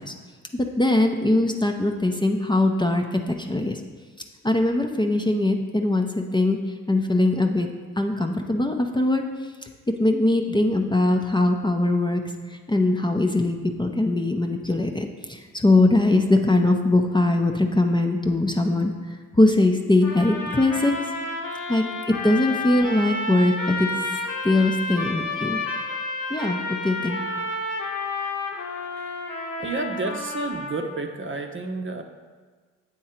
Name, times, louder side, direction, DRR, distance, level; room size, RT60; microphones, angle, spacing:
voice 1, 0.5-3.8 4.4-6.6 6.9-7.7 8.0-9.2 9.9-12.2 12.5-20.9 21.7-21.8 22.2-23.9 24.4-26.0 26.3-26.6 26.8-27.2, left 2 dB, 15° left, 3 dB, 0.6 m, -21 dB
sound 1, 20.0-31.0, left 2 dB, 70° left, 1.1 m, -31 dB
voice 2, 29.1-32.0, right 3 dB, 35° right, 4 dB, 0.7 m, -31 dB
7.9 x 3.7 x 4.4 m, 1.5 s
hypercardioid pair, 40°, 34 cm